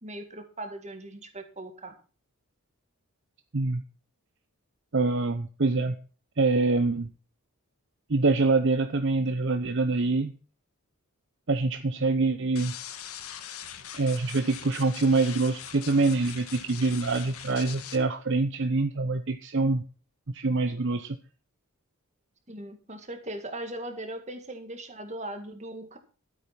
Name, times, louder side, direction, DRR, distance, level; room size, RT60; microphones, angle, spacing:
voice 1, 0.0-1.9 22.5-26.0, right 1 dB, 30° right, 6 dB, 2.1 m, -39 dB
voice 2, 4.9-6.0 6.4-7.1 8.1-10.3 11.5-12.8 13.9-19.8 20.3-21.2, right 3 dB, 55° right, 9 dB, 0.8 m, -25 dB
sound 1, 12.6-18.0, left 9 dB, 80° left, 1.6 m, -42 dB
12.5 x 8.7 x 5.8 m, 0.37 s
head